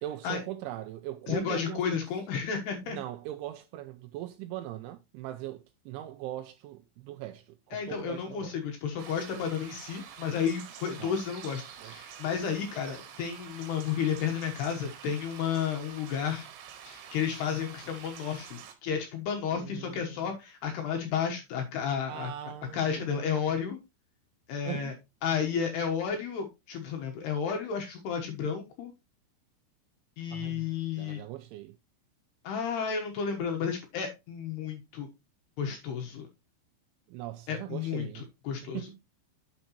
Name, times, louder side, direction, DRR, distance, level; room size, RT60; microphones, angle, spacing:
voice 1, 0.0-2.1 2.8-8.6 11.0-11.2 11.8-12.0 19.5-20.3 22.1-23.4 24.6-25.0 30.3-30.7 31.0-31.8 37.1-38.3 38.7-39.0, right 13 dB, 85° right, 2.7 m, -40 dB
voice 2, 1.3-3.0 7.7-16.5 16.9-22.3 22.7-23.8 24.5-24.9 25.2-28.9 30.2-31.2 32.4-35.1 35.6-36.3 37.5-38.8, left 7 dB, 70° left, 2.7 m, -32 dB
sound 1, 9.0-18.8, right 8 dB, 70° right, 3.3 m, -47 dB
9.5 x 7.1 x 3.0 m
omnidirectional pair, 6.0 m